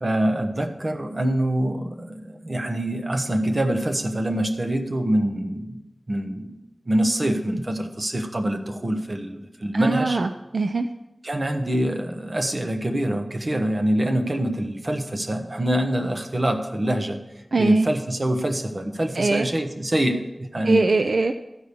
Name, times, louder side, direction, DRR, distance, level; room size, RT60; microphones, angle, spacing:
voice 1, 0.0-6.6 6.9-10.2 11.2-17.2 17.6-20.8, right 1 dB, 45° right, 6 dB, 1.0 m, -25 dB
voice 2, 9.7-10.9 17.5-17.9 19.2-19.5 20.6-21.3, right 3 dB, 80° right, 8 dB, 0.4 m, -22 dB
13.0 x 5.0 x 6.8 m, 0.96 s
wide cardioid pair, 70°, 0 cm